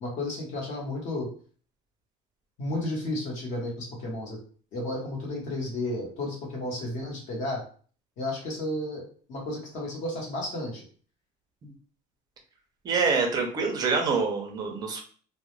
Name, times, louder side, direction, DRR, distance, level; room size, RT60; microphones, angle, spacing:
voice 1, 0.0-1.3 2.6-4.4 4.7-7.6 8.2-9.0 9.3-10.8, left 1 dB, 50° left, -2 dB, 1.0 m, -32 dB
voice 2, 12.8-15.0, right 4 dB, 25° right, 2 dB, 0.4 m, -26 dB
2.2 x 2.1 x 3.0 m, 0.43 s
cardioid pair, 175°, 16 cm